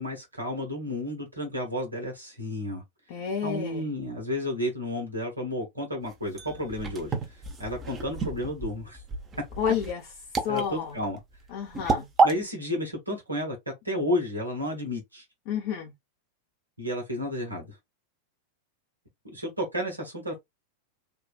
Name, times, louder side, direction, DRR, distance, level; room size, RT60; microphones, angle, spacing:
voice 1, 0.0-2.8 3.4-7.1 7.6-9.0 10.5-11.2 12.2-13.6 13.8-15.2 16.8-17.8 19.2-20.4, left 1 dB, 85° right, 1.3 m, -32 dB
voice 2, 3.1-3.9 9.6-10.0 10.4-11.0 11.5-12.1 15.5-15.9, left 8 dB, 50° left, 0.8 m, -30 dB
sound 1, 6.0-12.3, right 4 dB, 25° right, 0.8 m, -29 dB
3.6 x 2.4 x 2.4 m
figure-of-eight pair, 90°, 0 cm